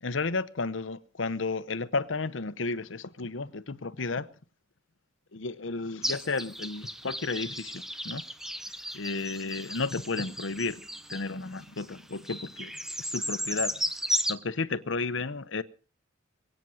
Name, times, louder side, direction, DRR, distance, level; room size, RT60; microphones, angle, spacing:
voice 1, 0.0-4.3 5.3-8.2 8.9-10.8 11.1-13.8 14.3-15.6, left 3 dB, 80° left, 0.9 m, -33 dB
sound 1, 6.0-14.3, equal, ahead, 1.0 m, -35 dB
23.0 x 9.1 x 6.3 m
head